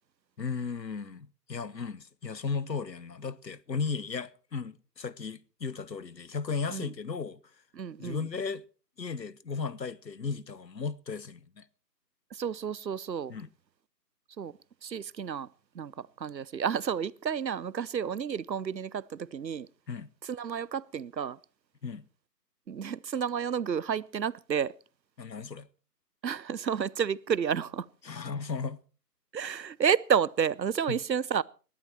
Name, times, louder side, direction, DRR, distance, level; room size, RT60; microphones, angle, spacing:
voice 1, 0.4-7.4 8.0-8.6 9.0-11.6 13.3-13.5 19.9-20.1 21.8-22.0 25.2-25.7 28.0-28.8 30.9-31.0, left 5 dB, 80° left, 1.0 m, -35 dB
voice 2, 7.8-8.3 12.3-13.3 14.4-14.5 14.8-15.5 15.8-19.7 20.3-21.4 22.7-24.7 26.2-27.9 29.3-31.4, right 7 dB, 85° right, 0.7 m, -30 dB
19.0 x 11.5 x 4.3 m
figure-of-eight pair, 160°, 50 cm